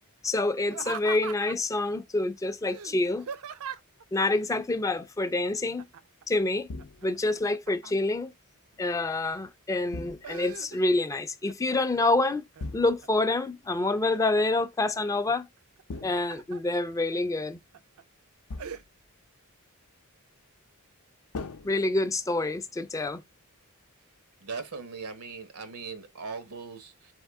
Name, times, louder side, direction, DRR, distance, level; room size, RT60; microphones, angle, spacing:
voice 1, 0.2-3.3 4.1-5.8 6.3-6.7 7.0-8.3 8.8-12.4 12.7-15.5 16.0-17.6 21.6-23.2, left 2 dB, 15° left, 0.3 m, -27 dB
Laughter, 0.6-1.8 2.7-4.0 5.8-6.2 6.6-8.2 8.7-9.4 9.8-11.1 11.5-12.0 12.5-13.3 13.8-14.6 15.8-16.6 17.1-17.2 17.7-18.0 18.6-18.8, right 7 dB, 70° right, 0.4 m, -41 dB
sound 1, 6.7-7.3 9.9-10.6 12.6-13.3 15.9-16.8 18.5-19.1 21.3-22.4, left 3 dB, 85° left, 0.5 m, -41 dB
voice 2, 24.4-27.1, right 4 dB, 90° right, 1.0 m, -39 dB
4.1 x 3.5 x 3.5 m
head